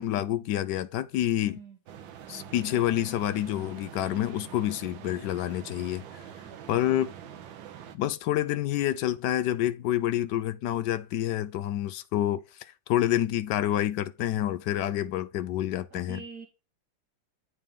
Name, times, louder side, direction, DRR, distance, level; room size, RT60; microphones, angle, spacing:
voice 1, 0.0-1.6 2.3-6.0 6.7-7.1 7.9-12.4 12.9-16.2, left 12 dB, 75° left, 1.1 m, -28 dB
voice 2, 1.5-1.8 6.4-7.0 15.9-16.5, right 5 dB, 60° right, 1.6 m, -45 dB
sound 1, 1.9-8.0, right 9 dB, 75° right, 1.5 m, -45 dB
8.8 x 4.1 x 3.6 m
omnidirectional pair, 2.1 m